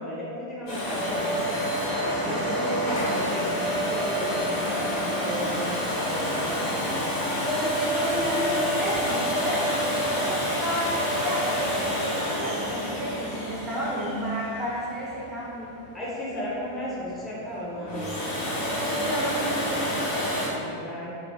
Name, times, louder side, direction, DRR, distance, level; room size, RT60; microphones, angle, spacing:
voice 1, 0.0-1.7 2.2-7.1 15.9-18.1 20.5-21.1, equal, 10° left, -7 dB, 0.7 m, -34 dB
Domestic sounds home sounds, 0.7-15.4 17.7-20.5, equal, 50° left, 0.7 m, -28 dB
voice 2, 7.4-11.7 12.2-15.8 18.7-19.9, equal, 30° right, -6 dB, 0.4 m, -31 dB
2.4 x 2.3 x 2.2 m, 2.5 s
figure-of-eight pair, 90°, 0 cm